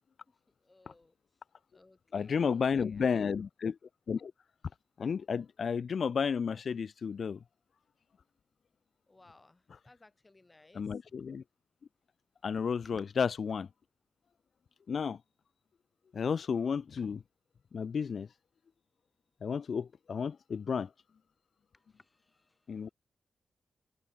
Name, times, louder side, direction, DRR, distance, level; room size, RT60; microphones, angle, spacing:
voice 1, 0.3-1.1 1.7-3.3 9.1-11.2 13.0-13.1 21.7-22.9, left 2 dB, 20° left, 7.1 m, -62 dB
voice 2, 2.1-3.8 4.1-4.3 5.0-7.4 10.8-11.4 12.4-13.7 14.9-15.2 16.1-17.2 17.7-18.3 19.4-20.9 22.7-22.9, left 6 dB, 55° left, 0.3 m, -32 dB
wide cardioid pair, 120°, 0 cm